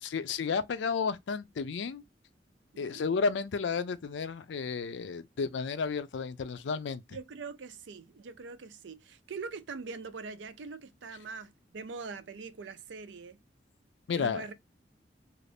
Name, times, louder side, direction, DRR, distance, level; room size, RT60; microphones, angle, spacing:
voice 1, 0.0-2.0 2.8-7.0 14.1-14.5, left 5 dB, 90° left, 0.4 m, -32 dB
voice 2, 7.1-13.4 14.2-14.5, right 4 dB, 90° right, 0.5 m, -43 dB
2.5 x 2.4 x 3.3 m
head